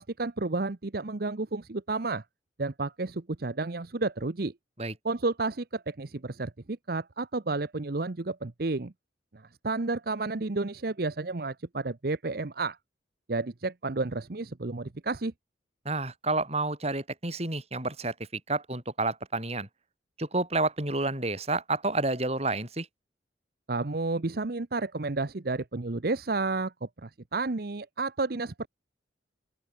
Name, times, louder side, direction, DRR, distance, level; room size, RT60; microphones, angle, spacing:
voice 1, 0.0-2.2 2.6-4.5 5.0-8.9 9.3-12.8 13.3-15.3 23.7-28.7, right 3 dB, 55° right, 0.8 m, -31 dB
voice 2, 15.9-19.7 20.2-22.9, right 2 dB, 35° right, 5.4 m, -30 dB
open air
head